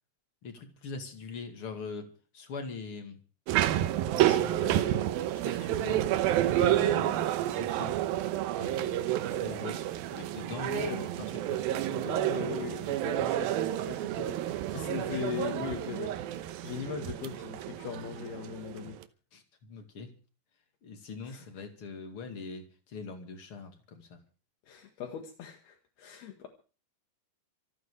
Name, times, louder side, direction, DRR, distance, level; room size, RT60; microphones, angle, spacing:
voice 1, 0.4-3.2 4.2-5.1 5.3-8.0 8.6-9.1 9.3-9.8 10.1-11.6 13.0-13.2 15.0-15.7 19.3-20.1 20.8-24.2, left 4 dB, 40° left, 7 dB, 2.6 m, -42 dB
sound 1, 3.5-19.0, right 13 dB, 75° right, 2.6 m, -30 dB
voice 2, 10.7-11.1 11.6-16.1 16.6-19.0 21.2-21.6 24.7-26.5, left 8 dB, 75° left, 2 dB, 3.8 m, -39 dB
26.5 x 9.4 x 4.9 m, 0.37 s
omnidirectional pair, 4.6 m